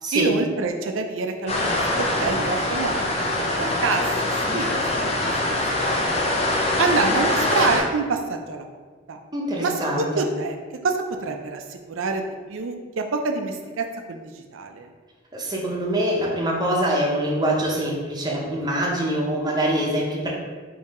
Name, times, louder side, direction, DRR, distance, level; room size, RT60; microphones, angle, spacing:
voice 1, 0.1-4.0 4.5-5.6 6.3-6.4 6.8-8.7 9.1-9.2 9.6-10.6 10.8-14.9, right 4 dB, 80° right, 5 dB, 0.4 m, -27 dB
sound 1, 1.5-7.8, left 1 dB, 30° left, 0.5 m, -23 dB
voice 2, 9.3-10.3 15.3-20.3, right 1 dB, 20° right, -3 dB, 0.7 m, -24 dB
3.6 x 2.8 x 4.1 m, 1.5 s
head